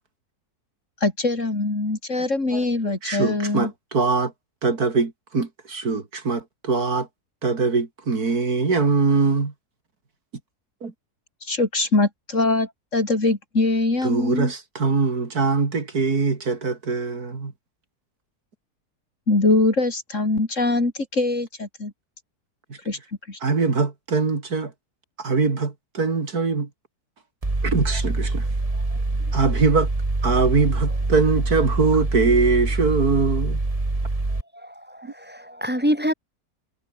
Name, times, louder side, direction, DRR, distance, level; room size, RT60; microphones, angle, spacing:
voice 1, 1.0-3.7 11.5-14.5 19.3-21.9 22.9-23.0 23.3-23.4, left 2 dB, 50° left, 4.2 m, -22 dB
voice 2, 2.5-4.3 4.6-7.1 7.4-9.5 10.8-10.9 14.0-17.5 23.4-24.7 25.2-26.7 27.6-28.5 29.3-29.9 30.2-33.6 35.0-35.1, right 4 dB, 65° right, 3.3 m, -22 dB
Mechanical fan, 27.4-34.4, right 2 dB, 20° right, 2.3 m, -25 dB
voice 3, 34.9-36.1, equal, 5° right, 3.2 m, -27 dB
omnidirectional pair, 1.7 m